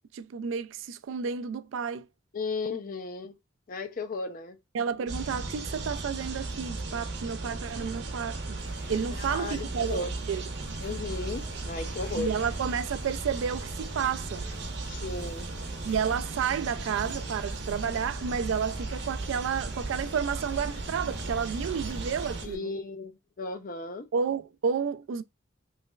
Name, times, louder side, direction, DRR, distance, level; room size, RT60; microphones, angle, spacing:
voice 1, 0.1-2.1 4.7-8.6 8.9-10.0 10.3-10.5 12.1-14.5 15.8-22.7 24.1-25.2, right 6 dB, 75° right, 0.3 m, -31 dB
voice 2, 2.3-3.4 3.7-4.6 9.1-10.1 10.8-12.3 14.9-15.5 22.4-23.1 23.4-24.1, left 3 dB, 40° left, 0.4 m, -35 dB
sound 1, 5.1-22.5, right 3 dB, 55° right, 0.7 m, -36 dB
sound 2, 8.6-22.6, equal, 70° left, 1.3 m, -45 dB
3.2 x 3.1 x 2.3 m
head